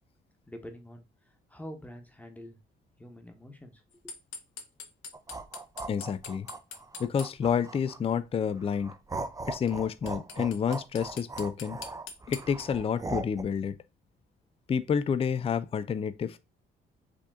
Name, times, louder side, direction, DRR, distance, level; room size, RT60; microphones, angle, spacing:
voice 1, 0.5-1.0 1.5-2.6 3.0-4.1, equal, 5° left, 1.1 m, -46 dB
sound 1, 4.1-7.3 9.7-9.8 10.1-12.6, left 6 dB, 80° left, 0.8 m, -42 dB
sound 2, 5.1-8.2 8.6-13.4, right 3 dB, 15° right, 0.6 m, -39 dB
voice 2, 5.9-6.5 7.0-8.9 9.5-11.8 12.3-13.7 14.7-16.4, left 7 dB, 30° left, 0.4 m, -29 dB
5.0 x 2.7 x 3.6 m
cardioid pair, 90°, 20 cm